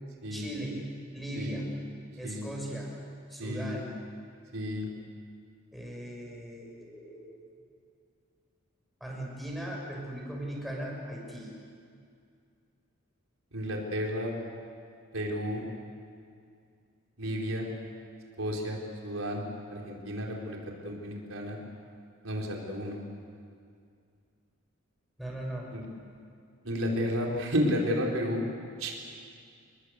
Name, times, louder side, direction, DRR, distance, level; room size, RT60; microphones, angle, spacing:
voice 1, 0.3-1.7 2.2-2.9 3.3-3.9 5.7-7.5 9.0-11.5 25.2-25.7, right 1 dB, ahead, -2 dB, 6.3 m, -38 dB
voice 2, 3.4-3.8 4.5-4.9 13.5-14.3 15.1-15.6 17.2-17.7 18.4-18.8 19.0-19.4 19.7-20.6 20.8-21.6 22.2-23.0 25.7-25.8 26.6-28.4 28.8-28.9, equal, 80° right, -1 dB, 4.5 m, -31 dB
28.5 x 21.0 x 8.3 m, 2.3 s
head